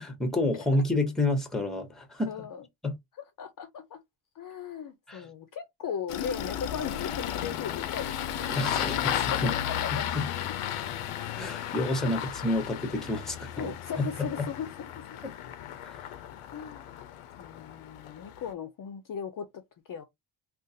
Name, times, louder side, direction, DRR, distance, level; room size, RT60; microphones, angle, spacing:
voice 1, 0.0-2.3 2.8-2.9 5.1-5.2 8.5-9.5 10.1-10.2 11.3-13.7 15.8-16.1, left 2 dB, ahead, 0.6 m, -29 dB
voice 2, 2.3-2.6 3.4-4.0 4.4-8.9 9.2-10.1 12.0-12.3 13.6-14.9 16.5-17.0 17.4-19.6 19.9-20.0, left 7 dB, 45° left, 0.5 m, -38 dB
Engine starting, 6.1-18.5, left 10 dB, 90° left, 0.6 m, -34 dB
3.7 x 2.4 x 2.6 m
cardioid pair, 150°, 50 cm